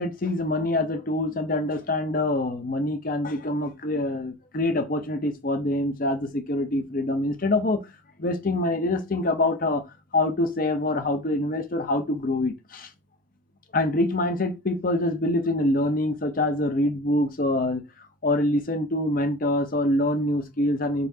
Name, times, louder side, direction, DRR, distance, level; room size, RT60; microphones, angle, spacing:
voice 1, 0.0-7.8 8.2-9.8 10.1-12.9 13.7-17.8 18.2-21.1, left 1 dB, 50° left, 0.7 m, -25 dB
4.6 x 4.1 x 2.7 m
head